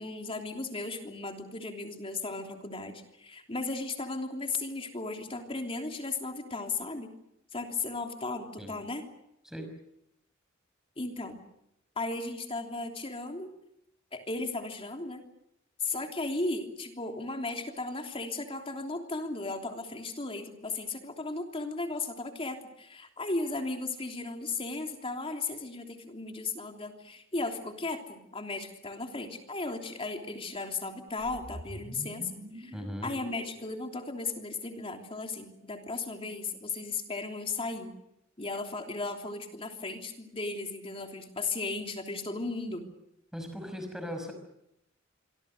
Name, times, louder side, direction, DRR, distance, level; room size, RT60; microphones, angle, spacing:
voice 1, 0.0-7.1 7.5-9.0 11.0-11.4 12.0-13.5 14.1-15.2 15.8-32.7 33.0-37.9 38.4-42.9, left 3 dB, 30° left, 4 dB, 3.2 m, -36 dB
sound 1, 31.1-35.4, equal, 40° right, 6.3 m, -47 dB
voice 2, 32.7-33.1 43.3-44.3, equal, 5° right, 6 dB, 5.7 m, -38 dB
26.5 x 24.5 x 6.6 m, 0.81 s
head